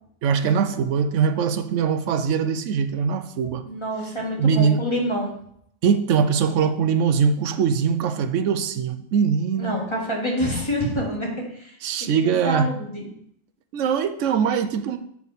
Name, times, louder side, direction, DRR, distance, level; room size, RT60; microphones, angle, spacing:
voice 1, 0.2-3.6 4.4-4.8 5.8-9.7 11.8-12.7 13.7-15.0, right 6 dB, 90° right, 9 dB, 1.0 m, -22 dB
voice 2, 3.7-5.3 9.6-13.1, equal, 25° left, -2 dB, 1.7 m, -27 dB
7.1 x 6.1 x 4.0 m, 0.70 s
omnidirectional pair, 1.2 m